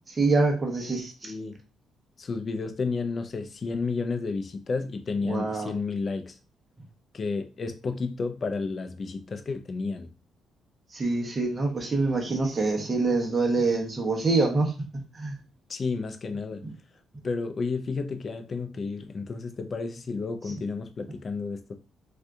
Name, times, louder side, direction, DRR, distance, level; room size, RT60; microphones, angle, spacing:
voice 1, 0.1-1.3 5.2-5.7 10.9-15.4, right 3 dB, 30° right, 0.9 m, -26 dB
voice 2, 1.2-1.6 2.2-6.4 7.1-10.1 15.7-16.6 17.2-21.7, left 4 dB, 40° left, 0.5 m, -31 dB
2.7 x 2.4 x 3.5 m
cardioid pair, 90°, 0 cm